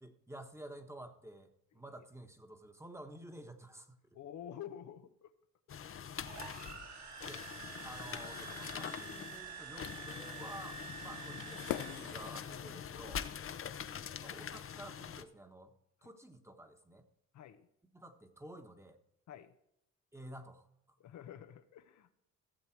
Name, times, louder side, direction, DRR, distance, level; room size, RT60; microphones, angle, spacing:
voice 1, 0.0-4.0 7.2-7.5 7.8-13.2 14.2-15.7 16.0-17.1 17.8-19.0 20.1-21.0, right 1 dB, 10° right, 6 dB, 1.4 m, -51 dB
voice 2, 4.1-5.3 12.7-12.9 13.5-13.8 17.3-17.7 19.3-19.5 21.0-22.2, left 10 dB, 70° left, 9 dB, 1.0 m, -50 dB
sound 1, 5.7-15.2, left 8 dB, 45° left, 0.8 m, -44 dB
sound 2, 6.2-12.6, right 5 dB, 65° right, 2.7 m, -48 dB
sound 3, 6.9-12.9, left 13 dB, 90° left, 0.7 m, -49 dB
15.5 x 7.4 x 4.6 m, 0.80 s
cardioid pair, 90°, 30 cm